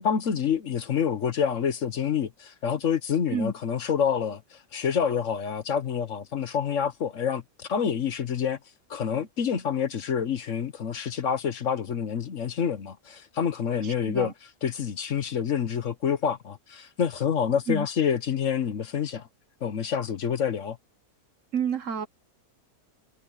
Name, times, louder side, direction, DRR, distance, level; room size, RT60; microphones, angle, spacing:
voice 1, 0.0-8.6 8.9-14.3 14.6-19.3 19.6-20.8, left 7 dB, 60° left, 1.3 m, -27 dB
voice 2, 13.8-14.3 17.7-17.9 21.5-22.1, right 6 dB, 60° right, 1.6 m, -29 dB
omnidirectional pair, 1.6 m